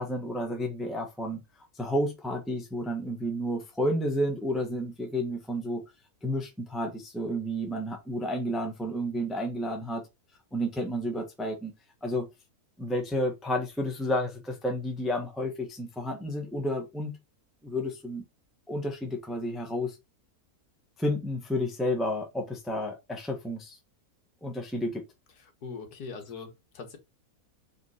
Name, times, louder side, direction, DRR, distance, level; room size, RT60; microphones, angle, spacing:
voice 1, 0.0-1.4 1.7-5.8 6.2-10.0 10.5-11.7 12.0-12.3 12.8-17.2 17.6-18.2 18.7-20.0 21.0-23.8 24.4-25.0, equal, ahead, 1.1 m, -31 dB
voice 2, 25.6-27.0, left 5 dB, 75° left, 1.8 m, -41 dB
5.1 x 3.9 x 4.8 m
omnidirectional pair, 1.6 m